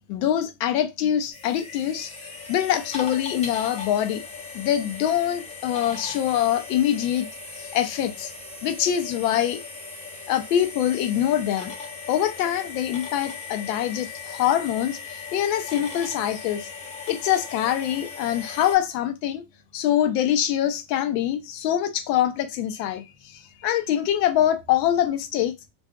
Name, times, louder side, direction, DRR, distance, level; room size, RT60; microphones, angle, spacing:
voice 1, 0.1-2.1 2.5-4.2 4.5-7.3 7.5-8.3 8.6-9.6 10.3-11.7 12.1-16.8 17.1-19.4 19.7-25.5, left 11 dB, 90° left, 0.8 m, -24 dB
sound 1, 1.3-18.8, left 4 dB, 15° left, 0.4 m, -38 dB
2.6 x 2.3 x 3.4 m
cardioid pair, 160°, 48 cm